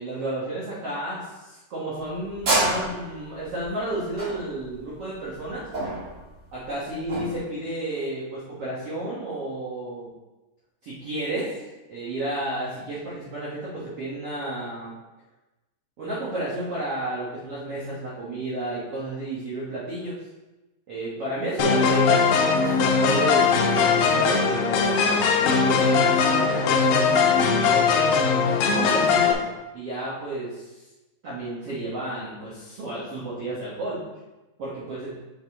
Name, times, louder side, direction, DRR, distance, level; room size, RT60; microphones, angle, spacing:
voice 1, 0.0-5.7 6.5-10.1 10.8-11.6 11.9-14.9 16.0-20.2 20.9-28.1 28.7-29.4 29.7-30.8 31.2-34.0 34.6-35.1, right 1 dB, 85° right, -8 dB, 1.3 m, -32 dB
sound 1, 1.9-7.4, right 1 dB, 40° right, 2.5 m, -28 dB
sound 2, 21.6-29.3, left 5 dB, 80° left, 2.6 m, -20 dB
7.1 x 5.9 x 3.6 m, 1.1 s
omnidirectional pair, 5.1 m